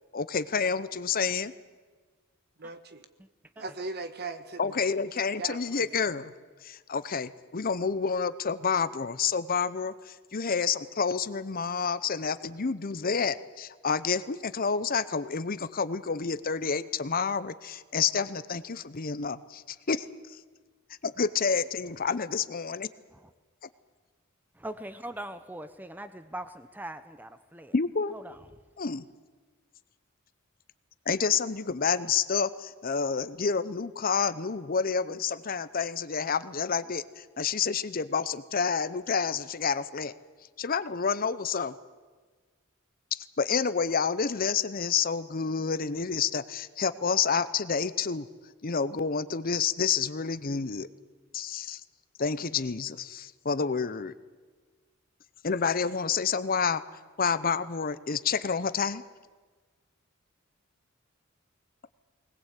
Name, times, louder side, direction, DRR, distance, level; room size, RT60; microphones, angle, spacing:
voice 1, 0.1-1.5 4.6-6.3 6.6-20.0 21.0-22.9 27.7-28.2 28.8-29.0 31.1-40.1 40.6-41.7 43.1-48.3 48.6-50.9 51.3-51.8 52.2-54.1 55.4-56.8 57.2-59.0, left 5 dB, 45° left, 0.8 m, -29 dB
voice 2, 2.6-3.0 3.6-4.8 5.4-6.1, right 3 dB, 50° right, 1.4 m, -39 dB
voice 3, 24.6-27.7 28.1-28.4, right 1 dB, 10° right, 0.7 m, -41 dB
21.0 x 20.0 x 8.3 m
head